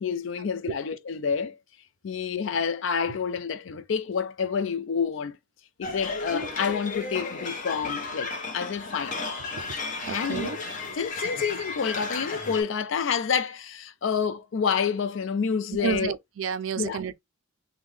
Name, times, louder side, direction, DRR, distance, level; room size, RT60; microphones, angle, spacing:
voice 1, 0.0-1.6 2.0-5.4 5.8-9.2 10.1-10.6 11.0-16.1 16.8-17.0, left 6 dB, 65° left, 0.4 m, -28 dB
sound 1, 5.8-12.6, left 3 dB, 40° left, 0.7 m, -34 dB
voice 2, 10.0-10.6 15.8-17.2, right 6 dB, 70° right, 0.4 m, -31 dB
3.6 x 2.1 x 3.2 m
head